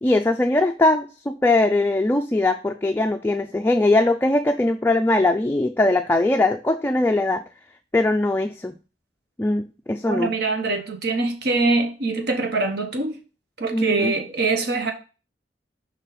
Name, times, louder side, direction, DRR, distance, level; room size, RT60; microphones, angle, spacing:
voice 1, 0.0-7.4 7.9-8.8 9.4-10.3 13.7-14.1, left 2 dB, 10° left, 0.3 m, -21 dB
voice 2, 10.1-13.2 13.6-14.9, right 3 dB, 60° right, 0.9 m, -23 dB
5.4 x 4.1 x 5.5 m
head